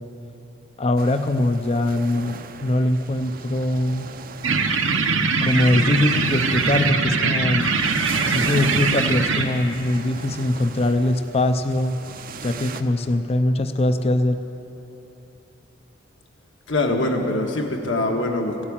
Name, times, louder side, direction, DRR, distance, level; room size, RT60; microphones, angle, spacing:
voice 1, 0.8-4.1 5.4-7.7 8.3-12.0 12.4-14.4, left 1 dB, 30° left, 9 dB, 0.5 m, -22 dB
sound 1, 1.0-12.8, right 4 dB, 45° right, 0.6 m, -37 dB
sound 2, 4.4-9.4, right 4 dB, 85° right, 1.0 m, -22 dB
voice 2, 16.7-18.6, left 2 dB, 70° left, 2 dB, 1.5 m, -23 dB
15.5 x 8.7 x 8.7 m, 2.9 s
head